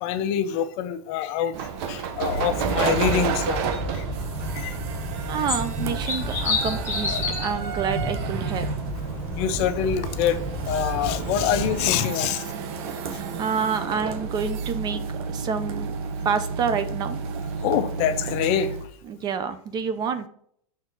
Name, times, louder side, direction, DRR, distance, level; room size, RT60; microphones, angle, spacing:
voice 1, 0.0-1.6 1.9-3.6 3.9-4.0 4.5-4.8 7.1-7.2 9.3-12.5 13.1-13.2 17.6-18.8, left 9 dB, 40° left, 11 dB, 0.5 m, -25 dB
sound 1, 1.5-18.9, right 6 dB, 50° right, 0.9 m, -31 dB
sound 2, 2.6-11.9, left 1 dB, 15° left, 2.0 m, -30 dB
sound 3, 4.4-19.2, right 4 dB, 85° right, 1.2 m, -43 dB
voice 2, 5.3-8.7 13.1-15.9 16.2-17.2 19.1-20.3, right 6 dB, 25° right, 11 dB, 0.4 m, -28 dB
6.5 x 3.5 x 5.3 m, 0.64 s
supercardioid pair, 145°, 18 cm